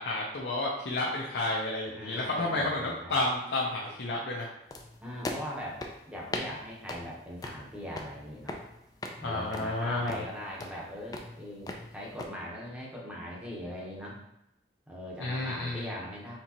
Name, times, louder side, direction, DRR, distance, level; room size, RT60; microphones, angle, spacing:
voice 1, 0.0-4.5 9.2-10.2 15.2-15.8, left 2 dB, 70° left, -3 dB, 0.6 m, -31 dB
voice 2, 1.9-3.2 5.0-8.6 9.2-14.2 14.9-16.4, equal, 5° right, -4 dB, 1.0 m, -41 dB
sound 1, 4.7-12.3, left 2 dB, 20° left, 0.4 m, -41 dB
4.5 x 3.8 x 2.9 m, 0.85 s
head